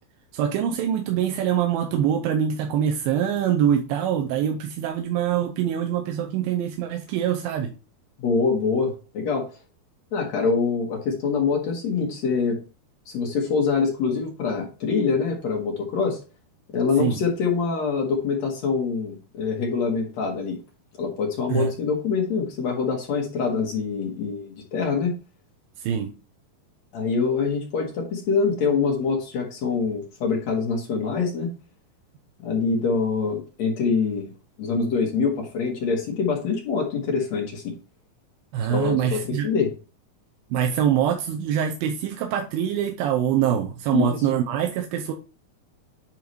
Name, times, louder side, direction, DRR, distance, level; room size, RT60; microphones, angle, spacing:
voice 1, 0.3-7.7 17.0-17.2 21.5-21.7 25.8-26.1 38.5-39.5 40.5-45.1, right 9 dB, 80° right, 2 dB, 2.3 m, -24 dB
voice 2, 8.2-9.5 10.1-12.6 13.1-16.2 16.7-20.6 21.0-25.2 26.9-31.5 32.4-34.3 34.6-37.8 38.7-39.7 43.9-44.2, left 5 dB, 65° left, 1 dB, 1.8 m, -25 dB
10.0 x 4.0 x 3.1 m, 0.34 s
omnidirectional pair, 4.5 m